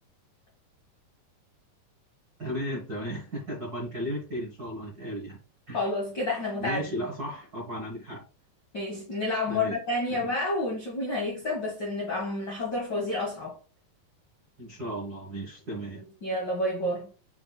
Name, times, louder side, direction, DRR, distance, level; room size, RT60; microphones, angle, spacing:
voice 1, 2.4-5.4 5.7-5.8 6.6-8.3 9.5-9.8 10.1-10.3 14.6-16.0, equal, 75° right, 0.8 m, -35 dB
voice 2, 5.7-7.1 8.7-13.6 15.9-17.1, left 2 dB, 65° left, 1.0 m, -30 dB
5.8 x 4.0 x 2.3 m
omnidirectional pair, 4.0 m